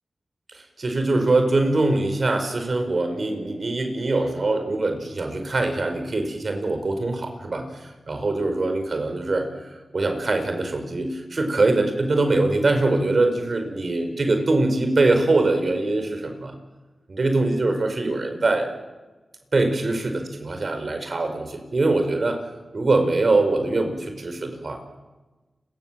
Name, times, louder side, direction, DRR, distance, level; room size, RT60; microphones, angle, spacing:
voice 1, 0.5-9.5 9.9-16.5 17.1-18.7 19.5-22.4 22.7-24.8, right 2 dB, 60° right, 6 dB, 5.3 m, -23 dB
30.0 x 23.0 x 7.8 m, 1.2 s
cardioid pair, 50°, 0 cm